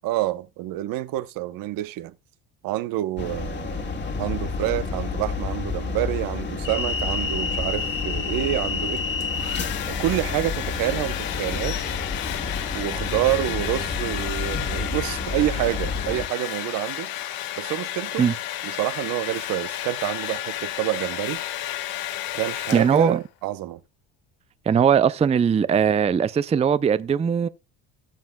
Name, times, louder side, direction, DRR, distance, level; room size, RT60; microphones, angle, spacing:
voice 1, 0.0-2.1 2.6-9.0 9.9-11.9 12.7-17.1 17.6-18.3 18.6-21.4 22.3-23.8, right 15 dB, 65° right, 0.9 m, -28 dB
sound 1, 3.2-16.3, left 4 dB, 30° left, 1.8 m, -29 dB
Domestic sounds home sounds, 9.0-23.2, left 13 dB, 75° left, 1.7 m, -32 dB
voice 2, 22.7-23.2 24.7-27.5, right 7 dB, 20° right, 0.4 m, -20 dB
18.5 x 7.3 x 2.3 m
supercardioid pair, 95°, 36 cm